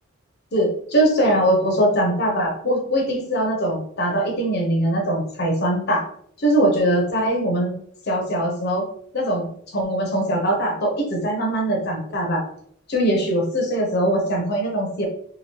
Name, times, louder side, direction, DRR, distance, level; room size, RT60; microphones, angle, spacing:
voice 1, 0.5-6.0 6.4-7.7 8.1-8.8 9.1-12.4 12.9-15.1, right 1 dB, 50° left, 0 dB, 0.7 m, -21 dB
2.8 x 2.6 x 2.9 m, 0.65 s
head